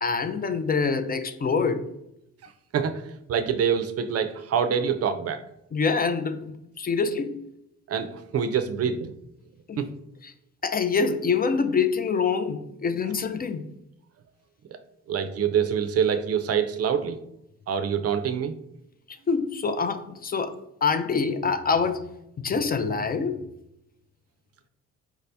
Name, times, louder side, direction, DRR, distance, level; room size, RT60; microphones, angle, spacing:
voice 1, 0.0-1.8 5.7-7.3 9.7-9.8 10.2-10.3 10.6-13.7 19.3-20.6 20.8-22.0 22.4-23.4, left 5 dB, 30° left, 9 dB, 0.4 m, -25 dB
voice 2, 2.4-3.0 3.3-5.4 7.9-9.1 9.8-9.9 15.1-17.2 17.7-18.6, right 7 dB, 55° right, 11 dB, 0.5 m, -25 dB
4.8 x 2.7 x 3.3 m, 0.80 s
cardioid pair, 90°, 30 cm